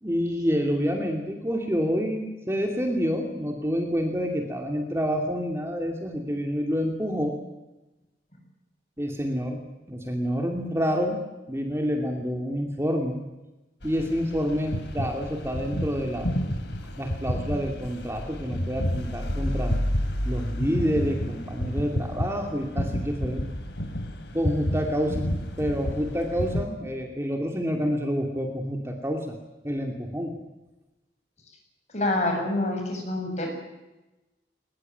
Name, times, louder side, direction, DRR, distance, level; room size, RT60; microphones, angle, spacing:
voice 1, 0.0-7.4 9.0-9.6 9.9-11.2 11.5-13.2 13.8-16.3 17.0-19.8 20.2-23.5 24.3-25.3 25.6-29.4 29.6-30.3, equal, 15° right, 2 dB, 2.6 m, -28 dB
sound 1, 13.8-26.7, equal, 85° left, 3.2 m, -30 dB
voice 2, 31.9-33.5, left 2 dB, 40° left, 2 dB, 7.4 m, -26 dB
22.0 x 20.5 x 9.2 m, 1.0 s
head